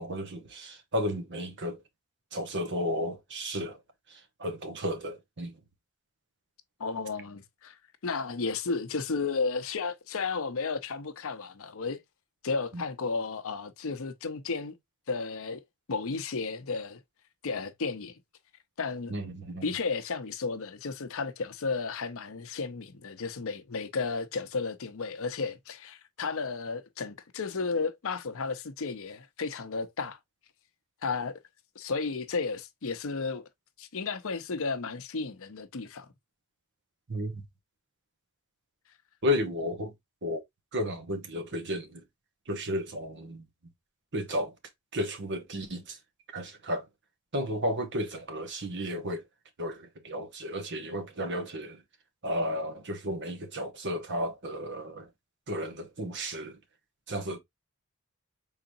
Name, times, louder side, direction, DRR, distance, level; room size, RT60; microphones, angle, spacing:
voice 1, 0.0-1.8 2.3-3.8 4.1-5.5 12.7-12.8 19.1-19.7 37.1-37.4 39.2-39.9 40.2-40.4 40.7-42.0 42.5-43.4 44.1-44.5 44.9-46.0 46.3-46.8 47.3-49.2 49.6-51.8 52.2-55.1 55.5-56.6 57.1-57.4, equal, 55° right, 1.2 m, -33 dB
voice 2, 6.8-7.8 8.0-12.0 12.4-14.8 15.1-15.6 15.9-17.0 17.4-18.2 18.8-19.1 19.6-30.2 31.0-31.3 31.7-33.5 33.8-36.1, left 4 dB, 65° left, 0.7 m, -33 dB
4.8 x 3.9 x 2.6 m
head